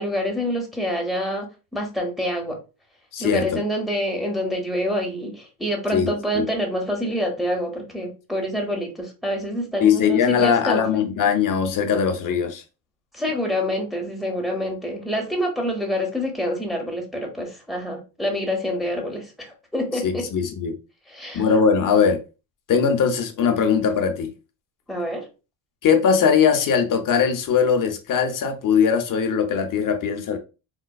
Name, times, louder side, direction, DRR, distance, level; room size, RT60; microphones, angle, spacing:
voice 1, 0.0-1.5 1.7-2.6 3.2-10.8 13.1-20.2 21.1-21.4 24.9-25.3, equal, ahead, 0.9 m, -26 dB
voice 2, 3.1-3.6 5.9-6.4 9.8-12.6 20.0-20.7 21.3-22.2 22.7-24.3 25.8-30.4, left 6 dB, 45° left, 0.7 m, -20 dB
4.0 x 2.2 x 2.2 m
cardioid pair, 110°, 47 cm